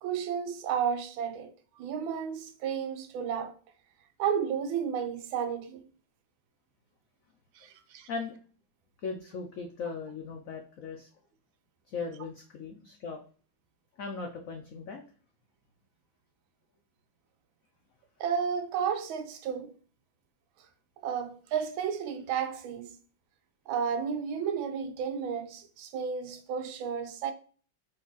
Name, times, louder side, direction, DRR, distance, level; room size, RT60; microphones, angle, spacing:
voice 1, 0.0-3.5 4.2-5.8 7.5-8.1 18.2-19.7 21.0-23.0 23.7-27.3, right 7 dB, 80° right, 1.4 m, -32 dB
voice 2, 9.0-11.1 11.9-13.2 14.0-15.0, left 4 dB, 90° left, 0.7 m, -38 dB
3.9 x 3.3 x 3.8 m
omnidirectional pair, 2.2 m